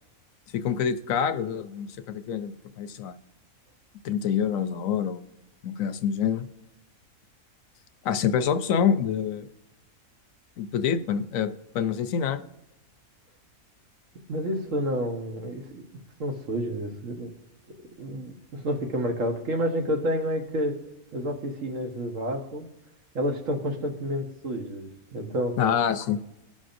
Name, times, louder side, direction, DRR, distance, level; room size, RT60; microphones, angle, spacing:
voice 1, 0.5-3.1 4.0-5.3 5.6-6.5 8.0-9.5 10.6-12.4 25.6-26.2, left 7 dB, 75° left, 10 dB, 1.0 m, -26 dB
voice 2, 14.3-15.8 16.2-17.3 18.0-20.8 21.1-22.7 23.1-25.6, equal, 65° right, 2 dB, 1.5 m, -29 dB
18.5 x 6.2 x 2.6 m, 0.97 s
omnidirectional pair, 1.5 m